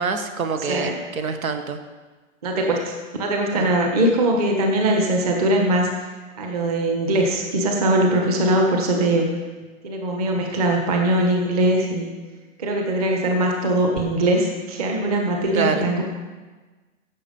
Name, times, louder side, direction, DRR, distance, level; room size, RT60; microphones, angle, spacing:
voice 1, 0.0-1.8 3.5-3.7 8.2-8.3 15.5-15.9, right 5 dB, 75° right, 8 dB, 1.5 m, -26 dB
voice 2, 2.4-5.9 6.4-9.3 9.8-12.1 12.6-16.0, right 1 dB, 25° right, 1 dB, 1.4 m, -21 dB
16.0 x 7.5 x 5.4 m, 1.3 s
hypercardioid pair, 170°, 42 cm